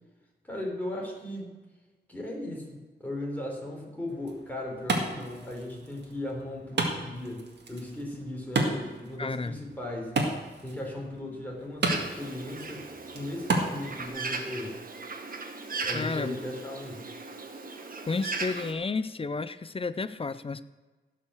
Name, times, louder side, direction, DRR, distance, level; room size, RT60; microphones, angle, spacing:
voice 1, 0.4-1.5 2.1-10.2 10.6-12.9 13.1-14.8 15.8-17.1, left 1 dB, 10° left, -2 dB, 3.9 m, -37 dB
Wood, 4.1-14.1, right 2 dB, 75° right, 1.9 m, -34 dB
voice 2, 9.2-9.6 15.9-16.4 18.1-20.6, left 4 dB, 30° left, 15 dB, 0.6 m, -31 dB
Bird, 11.9-18.7, right 3 dB, 55° right, 1.3 m, -37 dB
16.5 x 5.7 x 6.4 m, 1.3 s
wide cardioid pair, 85°, 18 cm